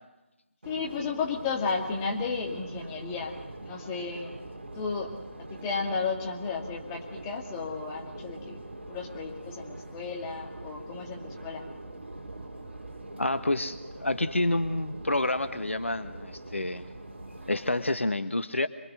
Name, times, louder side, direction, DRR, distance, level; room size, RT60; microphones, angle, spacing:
voice 1, 0.6-4.3 4.8-5.1 5.5-8.6 8.9-11.6, left 5 dB, 15° left, -1 dB, 2.3 m, -33 dB
Subway metro underground, 0.6-17.9, right 2 dB, 60° right, 4.0 m, -43 dB
voice 2, 13.2-16.9 17.5-18.7, left 2 dB, 70° left, 11 dB, 1.2 m, -28 dB
26.5 x 22.5 x 6.3 m, 1.0 s
figure-of-eight pair, 155°, 7 cm